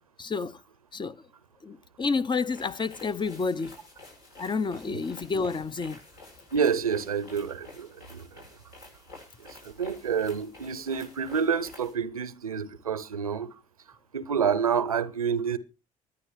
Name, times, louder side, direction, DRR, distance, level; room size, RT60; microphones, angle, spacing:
voice 1, 0.2-0.6 0.9-1.2 1.6-3.7 4.4-6.0, left 4 dB, 25° left, 0.7 m, -29 dB
sound 1, 2.4-11.9, left 2 dB, 65° left, 7.9 m, -50 dB
voice 2, 6.5-8.4 9.4-13.6 13.9-15.6, right 7 dB, 90° right, 0.6 m, -29 dB
24.0 x 9.7 x 3.2 m
figure-of-eight pair, 50°, 18 cm